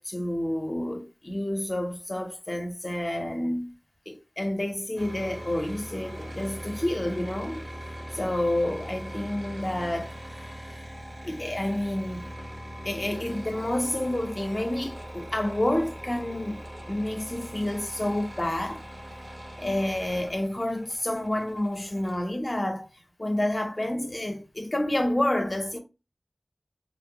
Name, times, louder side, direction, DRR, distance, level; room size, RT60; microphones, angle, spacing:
voice 1, 0.0-3.8 4.1-7.6 8.1-10.2 11.2-12.3 12.8-18.8 19.6-22.9 23.2-25.8, left 1 dB, 35° left, 0.6 m, -29 dB
sound 1, 5.0-22.2, equal, 55° right, 1.0 m, -41 dB
3.0 x 2.1 x 2.8 m
wide cardioid pair, 50°, 0 cm